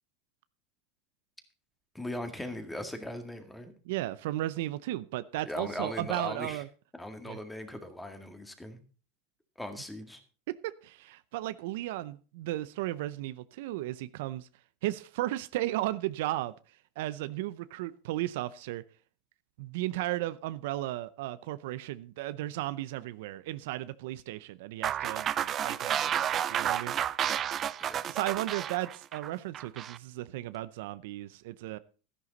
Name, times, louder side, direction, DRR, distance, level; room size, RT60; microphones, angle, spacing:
voice 1, 1.9-3.7 5.4-6.6 7.0-8.8 9.6-10.2 27.8-28.1, left 1 dB, 5° left, 7 dB, 2.0 m, -39 dB
voice 2, 3.9-6.7 7.2-7.4 10.5-14.5 14.8-16.5 17.0-18.8 19.6-27.0 28.1-31.8, right 16 dB, 70° right, 15 dB, 0.6 m, -35 dB
sound 1, 24.8-30.0, right 10 dB, 30° right, 0.5 m, -31 dB
13.0 x 11.0 x 4.0 m, 0.37 s
supercardioid pair, 130°, 0 cm